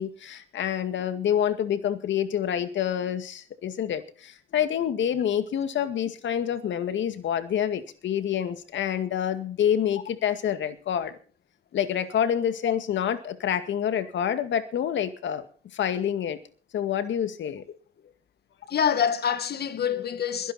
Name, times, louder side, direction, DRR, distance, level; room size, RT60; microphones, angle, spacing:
voice 1, 0.0-11.1 11.7-15.5 15.7-16.4 16.7-17.6, left 9 dB, 70° left, 2.1 m, -27 dB
voice 2, 18.7-20.5, left 8 dB, 55° left, 1.7 m, -26 dB
22.0 x 11.0 x 4.3 m
cardioid pair, 90°, 20 cm